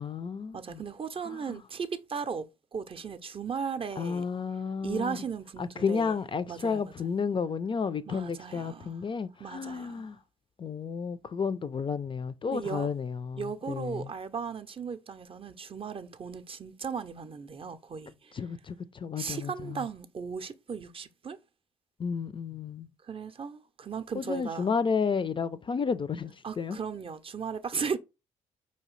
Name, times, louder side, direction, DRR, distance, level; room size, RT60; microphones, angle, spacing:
voice 1, 0.0-0.8 1.2-1.6 4.0-5.2 5.6-10.2 10.6-14.1 18.3-19.8 22.0-22.9 24.1-26.8, left 5 dB, 30° left, 0.4 m, -32 dB
voice 2, 0.5-4.2 4.8-6.2 6.5-6.9 8.1-9.0 9.4-10.1 12.5-12.9 13.4-18.3 19.2-21.4 23.1-24.7 26.4-28.0, right 6 dB, 35° right, 0.6 m, -36 dB
4.7 x 2.8 x 3.1 m
hypercardioid pair, 45°, 16 cm